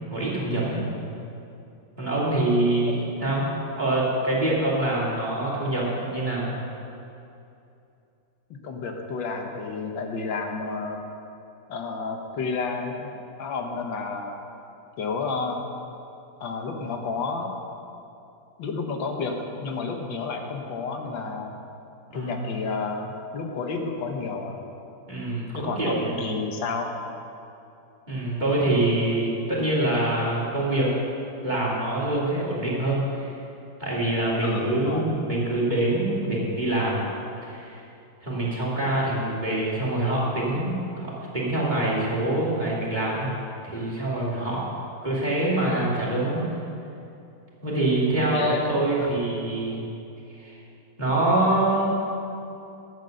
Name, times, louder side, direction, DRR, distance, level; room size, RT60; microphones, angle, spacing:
voice 1, 0.1-0.8 2.0-3.5 3.8-6.5 22.1-22.4 25.1-26.1 28.1-30.9 31.4-33.3 33.8-37.1 37.4-37.8 38.2-43.3 43.6-44.6 45.0-46.4 47.6-49.8 50.4-50.6 51.0-51.9, right 1 dB, 25° right, -6 dB, 2.8 m, -25 dB
voice 2, 0.6-1.1 2.9-3.0 8.6-11.1 11.7-14.4 15.0-15.6 16.4-17.5 18.6-21.5 22.1-24.6 25.5-26.9 34.4-35.1 48.1-49.1, left 4 dB, 80° left, 3 dB, 1.8 m, -31 dB
12.0 x 9.1 x 6.5 m, 2.7 s
omnidirectional pair, 2.0 m